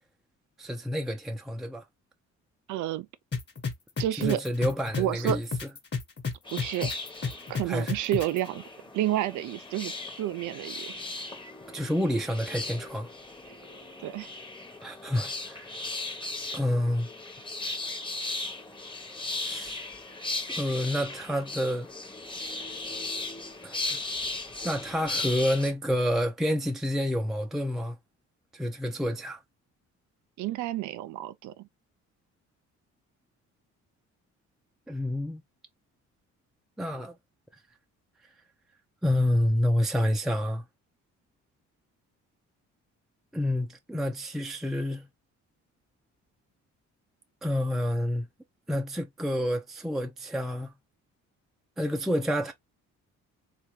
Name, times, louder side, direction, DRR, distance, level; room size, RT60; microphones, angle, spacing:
voice 1, 0.6-1.8 4.2-5.5 7.7-7.9 11.7-13.1 14.8-15.7 16.5-17.1 19.4-19.8 20.5-21.9 23.6-24.0 24.6-28.0 28.5-29.4 34.9-35.4 36.8-37.1 39.0-40.6 43.3-45.1 47.4-48.3 48.7-50.7 51.8-52.5, left 1 dB, ahead, 0.5 m, -28 dB
voice 2, 2.7-3.1 4.0-4.4 5.0-5.4 6.5-6.9 7.5-8.6 8.9-9.9 10.2-10.9 14.0-14.3 30.4-31.7, right 13 dB, 80° right, 0.5 m, -30 dB
sound 1, 3.3-8.4, left 5 dB, 35° left, 1.2 m, -31 dB
sound 2, 6.4-25.7, left 2 dB, 15° left, 0.9 m, -37 dB
3.4 x 2.4 x 3.0 m
cardioid pair, 90°, 30 cm